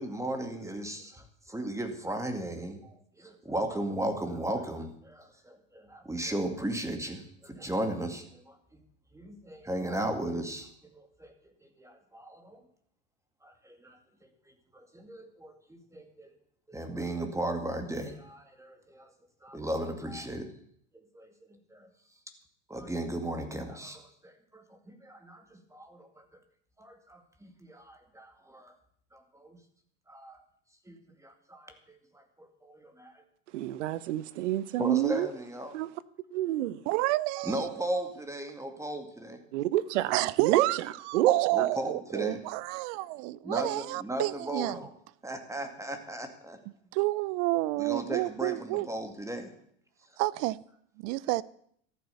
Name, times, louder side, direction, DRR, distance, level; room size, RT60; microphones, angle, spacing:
voice 1, 0.0-8.8 9.1-11.3 11.8-12.6 13.4-14.3 14.7-16.3 16.7-19.1 19.4-20.5 21.1-21.9 22.7-26.2 26.8-28.7 29.1-29.6 30.1-30.4 30.8-33.2 34.8-35.8 37.4-39.4 41.5-42.4 43.4-44.9 45.2-46.6 47.8-49.5 50.1-50.2, right 1 dB, 10° right, 2.2 m, -36 dB
voice 2, 33.5-35.3 35.7-35.9 36.3-36.8 39.5-40.7 41.1-41.7, right 14 dB, 80° right, 0.9 m, -28 dB
voice 3, 36.9-38.0 40.1-40.8 41.1-44.8 46.9-48.9 50.2-50.6 51.0-51.4, right 20 dB, 60° right, 0.6 m, -29 dB
13.5 x 9.3 x 6.9 m
hypercardioid pair, 95°, 36 cm